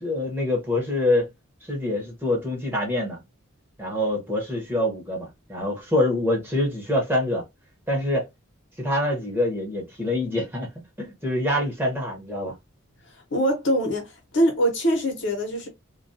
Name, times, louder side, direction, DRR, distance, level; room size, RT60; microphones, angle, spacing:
voice 1, 0.0-1.3 1.6-3.2 3.8-7.4 7.9-8.3 8.8-10.7 11.0-12.5, left 1 dB, 10° right, 0.9 m, -25 dB
voice 2, 13.3-15.7, equal, 60° left, 0.9 m, -23 dB
2.3 x 2.3 x 2.6 m
head